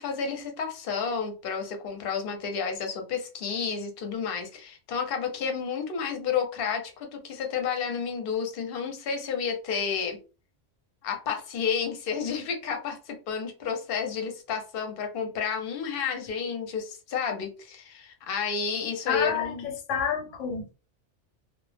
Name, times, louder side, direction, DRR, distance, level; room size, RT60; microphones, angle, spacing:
voice 1, 0.0-10.2 11.0-19.6, left 6 dB, 60° left, 0.7 m, -31 dB
voice 2, 19.1-20.7, left 7 dB, 90° left, 1.0 m, -29 dB
2.1 x 2.0 x 3.2 m
omnidirectional pair, 1.2 m